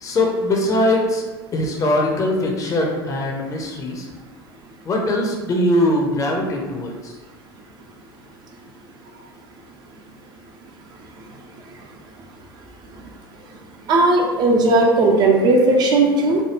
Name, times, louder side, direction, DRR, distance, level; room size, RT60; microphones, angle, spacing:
voice 1, 0.0-1.2 1.5-4.1 4.8-7.1, left 1 dB, 25° left, 0 dB, 0.5 m, -21 dB
voice 2, 13.9-16.4, right 2 dB, 35° right, 1 dB, 0.4 m, -16 dB
3.2 x 2.2 x 3.0 m, 1.3 s
figure-of-eight pair, 75°, 13 cm